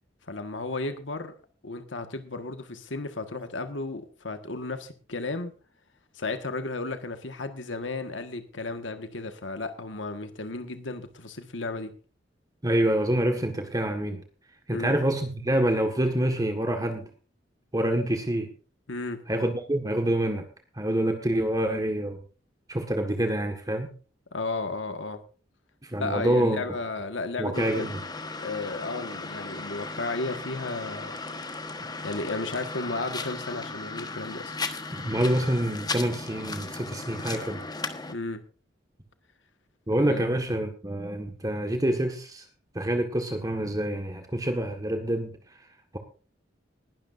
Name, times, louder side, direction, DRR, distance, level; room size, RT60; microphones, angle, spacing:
voice 1, 0.3-1.3 1.6-5.5 6.1-11.9 14.7-14.9 18.9-19.2 24.3-25.2 26.0-27.9 28.4-31.1 32.0-34.5 38.1-38.4 40.0-40.3, left 3 dB, 85° left, 8 dB, 1.6 m, -34 dB
voice 2, 12.6-14.2 14.7-17.1 17.7-18.5 19.3-20.4 20.7-22.2 22.7-23.9 25.8-26.6 27.4-28.0 34.9-37.6 39.9-42.4 42.7-45.3, right 1 dB, 20° right, 5 dB, 1.6 m, -26 dB
sound 1, 27.5-38.1, left 3 dB, 20° left, 1.3 m, -36 dB
20.0 x 12.0 x 2.6 m, 0.37 s
head